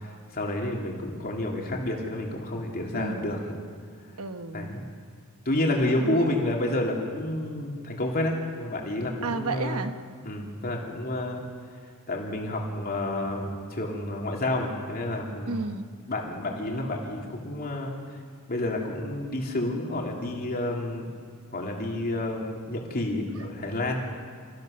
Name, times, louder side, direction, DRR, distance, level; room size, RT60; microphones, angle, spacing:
voice 1, 0.0-3.6 4.5-4.8 5.4-9.8 10.2-11.4 12.1-15.6 16.1-17.9 18.5-21.1 21.5-24.0, left 1 dB, 45° left, 0 dB, 3.2 m, -29 dB
voice 2, 2.9-3.4 4.2-4.7 6.0-6.2 9.2-9.9 15.5-15.9, right 3 dB, 70° right, 8 dB, 1.3 m, -32 dB
27.5 x 15.0 x 6.7 m, 2.1 s
head